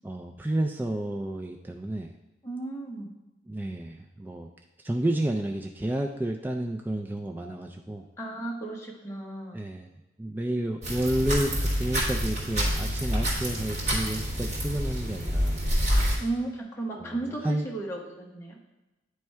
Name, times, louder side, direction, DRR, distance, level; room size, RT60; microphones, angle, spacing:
voice 1, 0.0-2.1 3.5-4.5 4.8-8.0 9.5-9.9 10.2-15.6 16.9-17.2 17.4-17.7, right 1 dB, 10° right, 3 dB, 0.3 m, -30 dB
voice 2, 2.4-3.1 8.2-9.7 16.2-18.6, right 2 dB, 15° left, -2 dB, 1.0 m, -34 dB
sound 1, 10.8-16.2, equal, 40° right, 1.9 m, -27 dB
9.3 x 3.2 x 4.5 m, 1.0 s
head